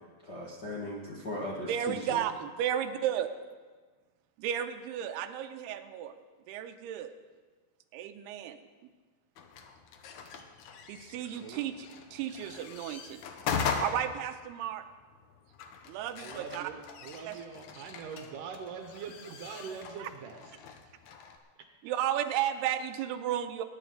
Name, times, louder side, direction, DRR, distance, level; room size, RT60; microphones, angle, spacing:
voice 1, 0.2-2.2, left 1 dB, 60° left, -5 dB, 1.1 m, -38 dB
voice 2, 1.7-3.3 4.4-6.2 6.5-7.1 7.9-8.6 10.9-13.2 13.8-14.9 15.9-16.7 17.3-17.4 20.0-20.1 21.8-23.6, right 10 dB, 90° right, 8 dB, 2.7 m, -33 dB
sound 1, 9.4-21.4, left 6 dB, 85° left, 1.6 m, -40 dB
voice 3, 16.2-20.5, right 6 dB, 70° right, 5 dB, 2.1 m, -43 dB
21.0 x 10.0 x 3.8 m, 1.4 s
omnidirectional pair, 4.6 m